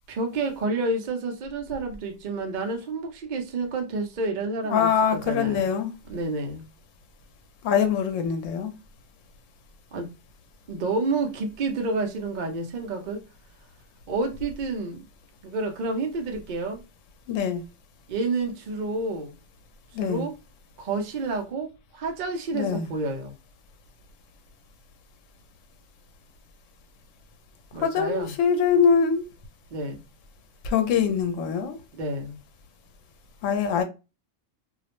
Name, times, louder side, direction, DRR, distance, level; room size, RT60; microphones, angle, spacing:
voice 1, 0.1-4.9 5.3-5.6 6.1-6.7 9.9-10.1 10.7-13.2 14.1-15.0 15.4-16.8 18.1-19.4 20.0-20.3 20.8-23.3 27.7-28.3 29.7-30.0 31.9-32.4, right 3 dB, 55° right, 0.5 m, -29 dB
voice 2, 4.7-5.9 7.6-8.7 17.3-17.6 19.9-20.3 22.5-22.9 27.8-29.3 30.6-31.8 33.4-33.8, left 7 dB, 80° left, 0.9 m, -23 dB
2.4 x 2.0 x 2.8 m
omnidirectional pair, 1.3 m